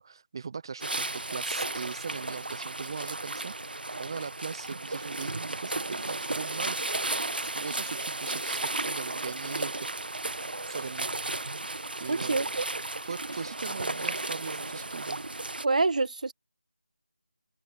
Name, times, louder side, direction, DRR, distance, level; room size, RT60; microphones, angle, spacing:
voice 1, 0.0-3.5 4.0-6.9 7.4-9.9 10.7-11.1 12.0-12.4 13.0-15.2, right 5 dB, 25° right, 0.5 m, -39 dB
sound 1, 0.8-15.7, right 2 dB, 70° right, 1.6 m, -34 dB
voice 2, 12.1-12.7 15.6-16.3, right 3 dB, 50° right, 1.2 m, -26 dB
figure-of-eight pair, 165°, 5 cm